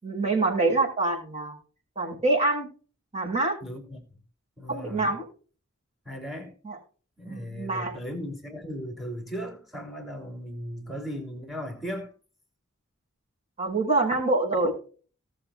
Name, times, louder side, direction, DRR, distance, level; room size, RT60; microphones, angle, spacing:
voice 1, 0.0-1.6 2.0-2.7 3.1-3.6 4.7-5.2 6.6-6.8 7.2-7.9 13.6-14.7, right 2 dB, 30° right, 5.6 m, -25 dB
voice 2, 3.6-4.0 4.6-5.1 6.0-6.6 7.2-12.1, equal, ahead, 3.4 m, -37 dB
19.0 x 7.1 x 2.4 m
head